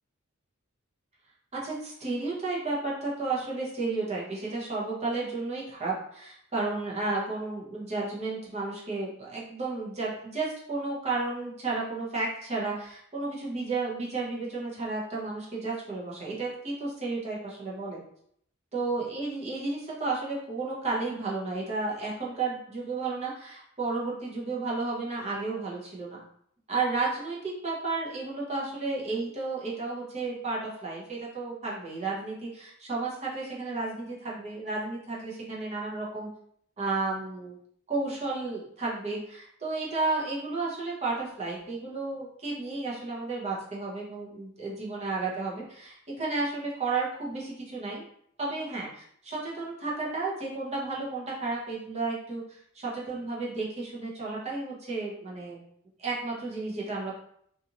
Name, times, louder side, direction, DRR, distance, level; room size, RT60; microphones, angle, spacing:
voice 1, 1.5-18.0 18.7-26.2 26.7-36.3 36.8-37.6 37.9-48.0 48.4-55.6 56.0-57.2, right 3 dB, 30° right, -5 dB, 0.8 m, -32 dB
2.6 x 2.5 x 2.8 m, 0.68 s
head